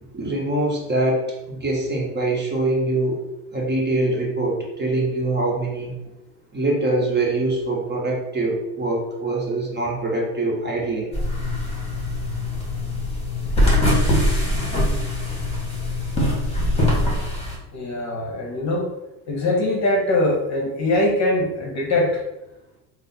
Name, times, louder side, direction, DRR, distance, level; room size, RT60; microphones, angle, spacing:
voice 1, 0.1-1.2 1.5-3.2 3.5-5.9 6.5-11.1, right 2 dB, 20° right, -2 dB, 1.1 m, -23 dB
sound 1, 11.1-17.6, left 1 dB, 15° left, 1.4 m, -22 dB
voice 2, 17.7-18.9 19.3-22.2, left 1 dB, 35° left, 0 dB, 1.0 m, -22 dB
3.7 x 2.1 x 4.1 m, 0.91 s
hypercardioid pair, 90°, 48 cm